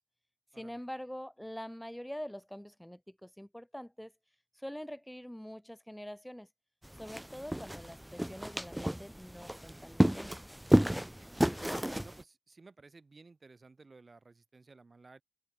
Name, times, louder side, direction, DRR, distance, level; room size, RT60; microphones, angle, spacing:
voice 1, 0.5-4.1 4.5-6.5 6.9-10.3, equal, 10° left, 5.8 m, -45 dB
sound 1, 6.8-12.2, equal, 10° right, 0.8 m, -31 dB
voice 2, 11.7-15.2, right 3 dB, 65° right, 4.8 m, -56 dB
wide cardioid pair, 55°, 0 cm